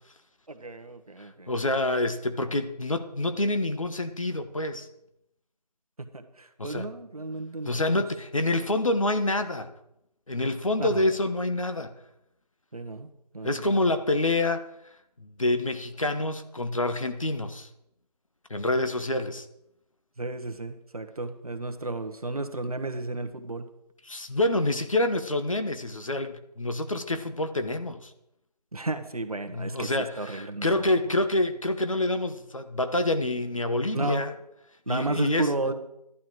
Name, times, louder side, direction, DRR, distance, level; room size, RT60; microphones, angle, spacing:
voice 1, 0.5-1.5 6.0-8.0 10.8-11.1 12.7-13.1 13.3-13.8 20.2-23.7 28.7-31.0 33.9-34.2 34.9-35.7, right 2 dB, 60° right, 7 dB, 1.4 m, -33 dB
voice 2, 1.2-4.9 6.6-6.9 7.6-9.7 10.3-11.9 13.4-14.6 15.2-17.7 18.5-19.5 24.1-28.1 29.5-34.3 34.9-35.5, left 2 dB, 50° left, 9 dB, 1.1 m, -27 dB
12.5 x 11.5 x 4.6 m, 0.80 s
figure-of-eight pair, 175°, 21 cm